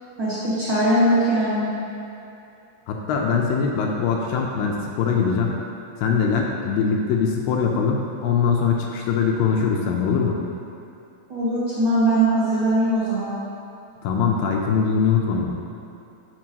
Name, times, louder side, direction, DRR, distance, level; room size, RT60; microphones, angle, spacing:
voice 1, 0.2-1.7 11.3-13.3, right 1 dB, 50° right, -12 dB, 1.7 m, -20 dB
voice 2, 2.9-5.6 6.0-10.4 14.0-15.5, left 6 dB, 80° left, 0 dB, 2.2 m, -22 dB
7.4 x 6.0 x 2.8 m, 2.7 s
omnidirectional pair, 4.2 m